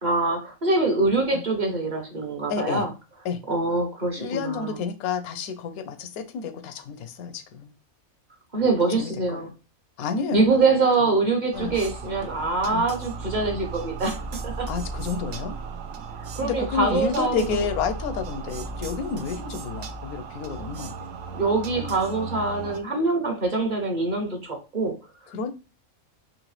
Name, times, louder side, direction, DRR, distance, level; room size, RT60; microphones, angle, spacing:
voice 1, 0.0-2.9 3.5-4.7 8.5-9.5 10.3-14.7 16.2-17.6 21.3-25.0, right 3 dB, 35° right, 0.9 m, -24 dB
voice 2, 2.5-2.9 3.2-3.4 4.2-7.7 8.8-9.5 10.0-10.5 11.5-11.8 12.7-12.9 14.7-15.5 16.4-20.9 21.7-22.0 25.3-25.5, left 6 dB, 85° left, 1.1 m, -30 dB
sound 1, 11.5-22.8, right 4 dB, 70° right, 0.9 m, -36 dB
3.9 x 3.0 x 3.1 m
omnidirectional pair, 1.5 m